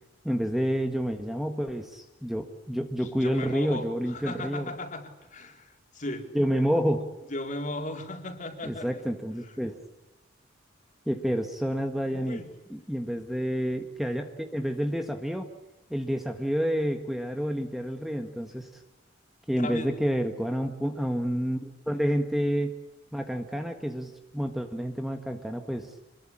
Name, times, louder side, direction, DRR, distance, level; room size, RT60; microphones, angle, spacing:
voice 1, 0.2-4.7 6.3-7.1 8.6-9.8 11.1-12.4 12.7-15.5 15.9-18.8 19.5-22.8 23.1-25.9, equal, ahead, 5 dB, 1.6 m, -29 dB
voice 2, 3.0-6.3 7.3-9.1 9.4-9.6 12.1-12.5 19.6-19.9, left 1 dB, 40° left, 4 dB, 4.2 m, -37 dB
27.5 x 22.0 x 8.6 m, 0.99 s
head